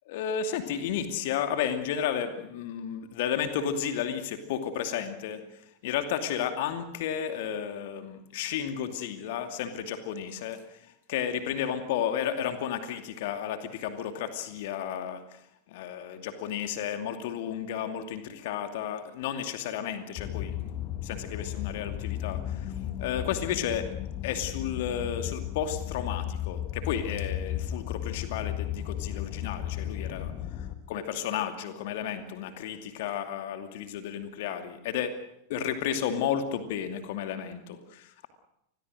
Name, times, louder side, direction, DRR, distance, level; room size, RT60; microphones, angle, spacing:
voice 1, 0.1-5.4 5.8-10.6 11.1-15.2 15.7-22.6 23.0-23.9 24.2-30.3 30.6-35.2 35.5-38.3, left 9 dB, 50° left, 8 dB, 2.5 m, -32 dB
sound 1, 20.2-30.8, left 11 dB, 35° left, 2.1 m, -35 dB
28.0 x 21.5 x 6.4 m, 0.80 s
figure-of-eight pair, 90°, 0 cm